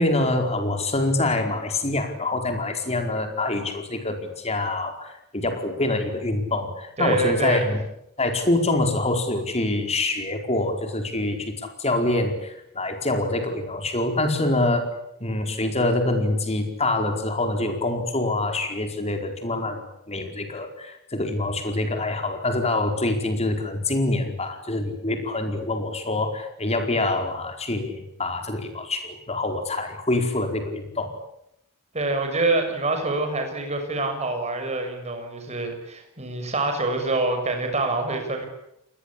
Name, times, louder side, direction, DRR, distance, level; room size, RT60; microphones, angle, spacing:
voice 1, 0.0-7.8 8.2-14.9 15.2-31.2, left 2 dB, 30° left, 5 dB, 4.6 m, -25 dB
voice 2, 7.0-7.7 31.9-38.5, right 2 dB, 30° right, 5 dB, 6.5 m, -26 dB
29.0 x 21.0 x 8.6 m, 0.79 s
head